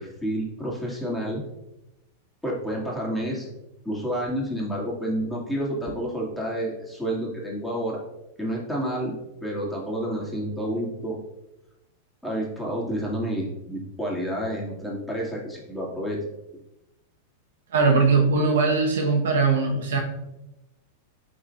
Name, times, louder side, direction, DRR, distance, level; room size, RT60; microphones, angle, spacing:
voice 1, 0.0-1.4 2.4-3.5 3.8-8.0 8.4-11.2 12.2-16.2, equal, 5° left, -5 dB, 2.5 m, -29 dB
voice 2, 17.7-20.0, right 4 dB, 70° right, 1 dB, 1.2 m, -20 dB
12.0 x 4.4 x 2.6 m, 0.94 s
hypercardioid pair, 100°, 0 cm